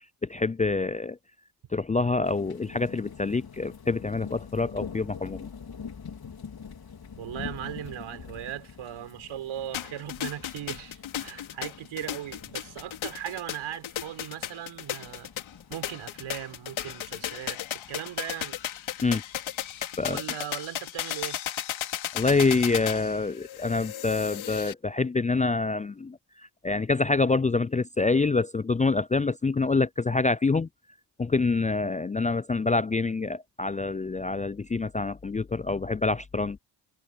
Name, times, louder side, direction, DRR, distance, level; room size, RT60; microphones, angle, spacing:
voice 1, 0.2-1.2 1.7-5.5 19.0-19.2 20.0-20.2 22.1-26.2 26.6-30.7 31.2-36.6, left 3 dB, 15° left, 0.5 m, -26 dB
sound 1, 2.2-20.4, left 6 dB, 50° left, 4.4 m, -46 dB
voice 2, 7.2-15.3 15.7-18.6 20.1-21.4, right 11 dB, 70° right, 5.1 m, -38 dB
sound 2, 9.7-24.7, left 11 dB, 70° left, 2.6 m, -35 dB
supercardioid pair, 50°, 49 cm